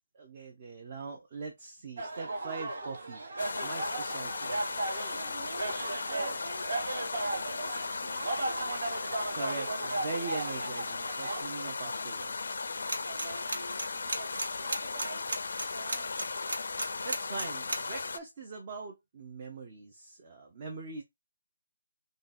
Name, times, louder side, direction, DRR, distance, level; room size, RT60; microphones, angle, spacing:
voice 1, 0.1-3.2 3.6-4.6 9.3-12.7 17.0-21.0, right 4 dB, 20° right, 0.5 m, -41 dB
sound 1, 2.0-11.4, right 2 dB, 40° right, 0.9 m, -36 dB
sound 2, 3.4-18.2, left 4 dB, 50° left, 0.4 m, -37 dB
voice 2, 5.1-8.8 12.9-15.3 15.6-16.3, right 3 dB, 65° right, 1.4 m, -45 dB
sound 3, 12.9-13.2 13.5-17.8, right 2 dB, 90° right, 1.2 m, -32 dB
3.7 x 2.2 x 4.0 m
hypercardioid pair, 180°, 0 cm